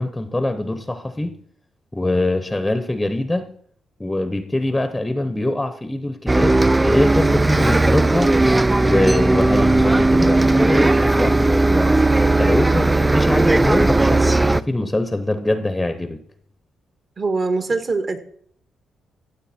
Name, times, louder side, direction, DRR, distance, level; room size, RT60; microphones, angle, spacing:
voice 1, 0.0-1.3 1.9-3.5 4.0-8.3 8.8-11.9 12.4-16.2, left 1 dB, 10° left, 10 dB, 0.9 m, -23 dB
Bus, 6.3-14.6, right 2 dB, 15° right, 0.3 m, -16 dB
voice 2, 17.2-18.2, right 3 dB, 40° right, 9 dB, 1.6 m, -22 dB
15.0 x 7.9 x 4.3 m, 0.63 s
cardioid pair, 100°, 0 cm